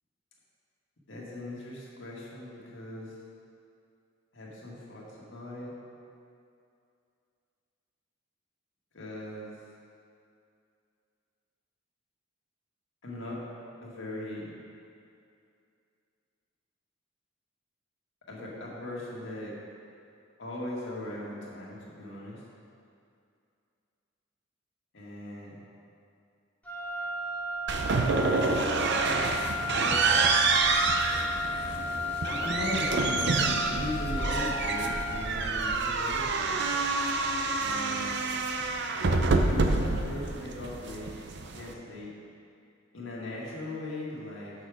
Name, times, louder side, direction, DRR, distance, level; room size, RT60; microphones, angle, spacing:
voice 1, 1.1-3.1 4.3-5.8 8.9-9.5 13.0-13.4 13.8-14.5 18.3-19.5 20.4-22.4 24.9-25.6 29.6-30.2 32.3-36.5 37.5-38.1 39.6-42.1 42.9-44.5, left 1 dB, 65° left, -5 dB, 1.9 m, -39 dB
Wind instrument woodwind instrument, 26.6-35.3, left 2 dB, 10° left, 1.0 m, -34 dB
sound 1, 27.7-41.7, right 3 dB, 60° right, 0.6 m, -27 dB
8.4 x 6.6 x 4.9 m, 2.5 s
head